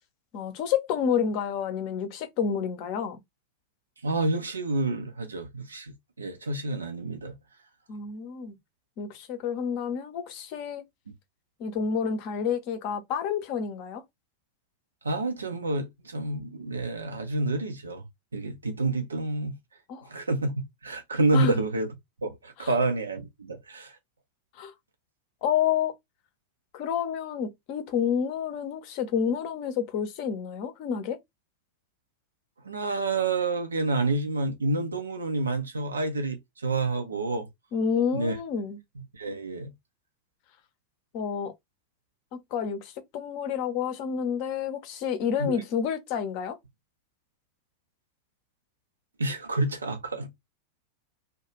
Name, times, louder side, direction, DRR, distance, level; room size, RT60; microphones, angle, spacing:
voice 1, 0.3-3.2 7.9-8.5 9.0-10.8 11.6-14.0 19.9-20.1 21.3-21.6 22.6-22.7 24.6-24.7 25.4-25.9 26.7-31.2 37.7-38.8 41.1-41.5 42.5-46.6, left 7 dB, 45° left, 0.6 m, -29 dB
voice 2, 4.0-7.4 15.0-18.0 18.3-19.5 20.1-21.9 22.2-23.9 32.6-37.5 38.1-38.4 39.1-39.7 45.4-45.5 49.2-50.3, right 2 dB, 75° right, 0.6 m, -28 dB
2.3 x 2.2 x 2.9 m
figure-of-eight pair, 90°, 0 cm